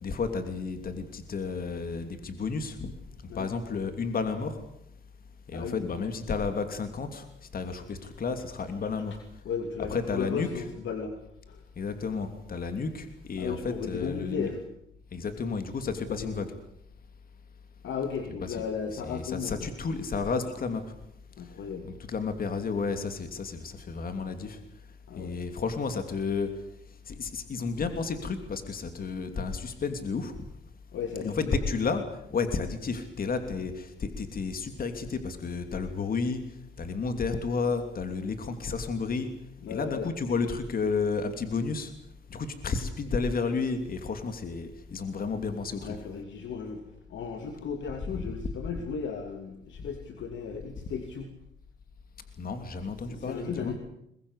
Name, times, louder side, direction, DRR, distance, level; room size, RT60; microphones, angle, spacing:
voice 1, 0.0-2.9 3.2-4.6 5.5-7.2 7.5-9.2 9.8-10.7 11.8-14.5 15.1-16.5 18.4-18.6 18.9-20.8 21.8-24.6 25.2-26.5 27.1-30.3 31.2-32.0 32.3-36.4 36.8-39.3 39.7-41.9 42.3-46.0 52.4-53.8, left 4 dB, 45° left, 8 dB, 3.0 m, -32 dB
voice 2, 5.5-6.1 9.4-11.1 11.5-11.6 13.4-14.6 16.1-16.3 17.8-19.7 21.4-21.9 25.1-25.3 30.9-31.5 39.6-40.1 45.8-46.8 47.1-51.3 53.0-53.8, left 6 dB, 70° left, 5 dB, 2.9 m, -35 dB
22.0 x 21.5 x 8.2 m, 0.77 s
cardioid pair, 90°, 20 cm